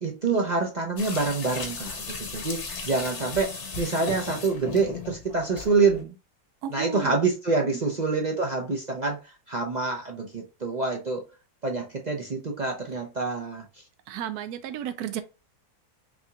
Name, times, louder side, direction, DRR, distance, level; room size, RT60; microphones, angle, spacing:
voice 1, 0.0-6.2 6.7-9.2 9.5-11.2 11.6-13.6, right 4 dB, 40° right, 0.6 m, -26 dB
sound 1, 1.0-6.0, left 4 dB, 50° left, 1.2 m, -36 dB
voice 2, 6.6-7.1 14.1-15.2, right 9 dB, 75° right, 1.1 m, -33 dB
6.0 x 2.8 x 2.4 m
omnidirectional pair, 1.7 m